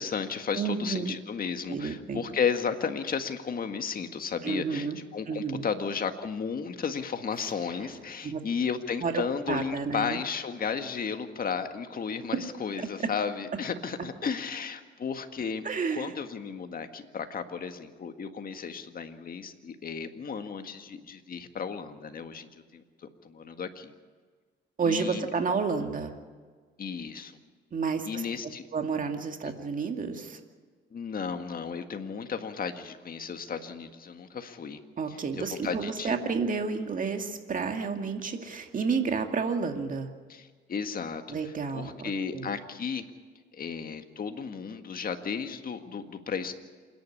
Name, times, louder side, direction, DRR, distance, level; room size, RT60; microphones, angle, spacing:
voice 1, 0.0-15.7 15.9-22.8 23.2-23.9 24.8-25.3 26.8-27.4 28.1-28.6 29.4-29.5 30.9-34.8 35.1-36.2 40.3-43.0 43.5-46.5, left 6 dB, 45° left, 7 dB, 1.8 m, -34 dB
voice 2, 0.6-1.1 1.7-2.2 4.4-5.0 5.3-5.6 8.2-8.4 9.0-9.2 9.5-10.2 15.6-16.1 24.8-26.1 27.7-28.2 28.7-30.4 35.0-40.1 41.3-42.5, right 5 dB, 40° right, 5 dB, 2.2 m, -30 dB
27.5 x 10.5 x 9.9 m, 1.5 s
cardioid pair, 90°, 20 cm